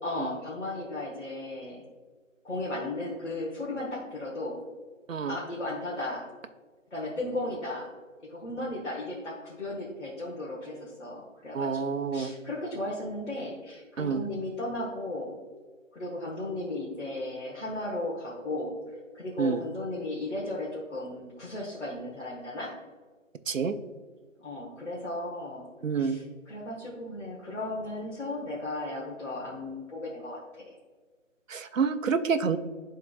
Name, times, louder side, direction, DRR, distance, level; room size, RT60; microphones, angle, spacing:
voice 1, 0.0-1.8 2.4-4.6 5.3-6.3 6.9-7.9 8.2-15.4 15.9-22.7 24.4-25.6 26.0-30.7, left 1 dB, 60° left, -5 dB, 1.5 m, -35 dB
voice 2, 11.5-12.3 14.0-14.2 19.4-19.6 23.5-23.7 25.8-26.2 31.5-32.6, right 5 dB, 75° right, 10 dB, 0.6 m, -28 dB
10.5 x 3.8 x 2.4 m, 1.4 s
figure-of-eight pair, 155°, 40 cm